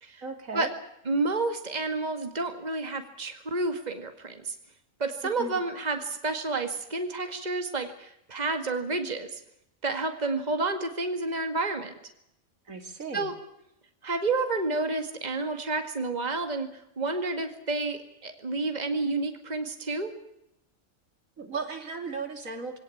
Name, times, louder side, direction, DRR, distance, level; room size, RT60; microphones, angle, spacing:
voice 1, 0.2-0.7 5.4-5.6 12.7-13.3 21.4-22.8, right 4 dB, 80° right, 5 dB, 3.1 m, -36 dB
voice 2, 1.1-4.6 5.0-9.4 9.8-11.9 13.1-13.4 14.0-20.1, right 3 dB, 30° right, 6 dB, 2.2 m, -30 dB
23.0 x 18.0 x 8.7 m, 0.80 s
omnidirectional pair, 1.4 m